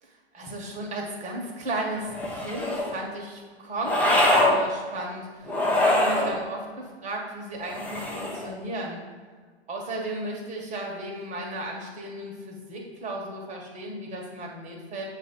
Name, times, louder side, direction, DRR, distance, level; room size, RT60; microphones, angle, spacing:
voice 1, 0.0-9.0 9.7-15.0, right 1 dB, 20° right, -1 dB, 1.4 m, -35 dB
sound 1, 2.1-2.9 3.8-4.6 5.5-6.3 7.7-8.5, left 1 dB, 5° left, 0.7 m, -23 dB
7.1 x 2.8 x 5.3 m, 1.5 s
hypercardioid pair, 115°, 32 cm